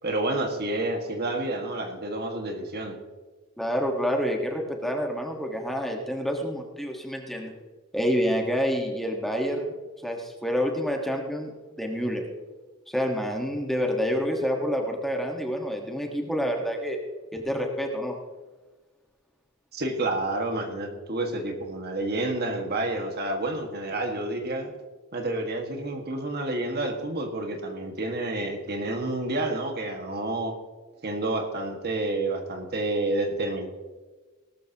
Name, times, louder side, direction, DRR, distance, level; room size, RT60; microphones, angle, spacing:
voice 1, 0.0-3.0 19.7-24.7 25.1-30.5 31.0-33.7, right 2 dB, 50° right, 4 dB, 1.7 m, -29 dB
voice 2, 3.6-7.5 7.9-9.7 10.0-11.5 11.8-12.2 12.9-17.0 17.3-18.1, equal, ahead, 1 dB, 1.4 m, -28 dB
19.0 x 13.0 x 2.9 m, 1.3 s
head